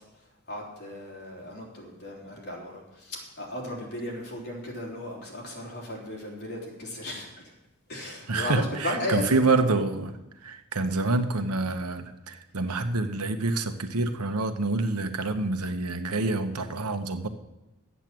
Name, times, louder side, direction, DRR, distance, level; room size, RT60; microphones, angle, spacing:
voice 1, 0.5-7.4 7.9-9.4, left 1 dB, 50° left, -2 dB, 3.6 m, -35 dB
voice 2, 8.3-10.1 10.4-17.3, right 3 dB, 90° right, 8 dB, 1.0 m, -27 dB
12.0 x 8.2 x 7.6 m, 0.95 s
head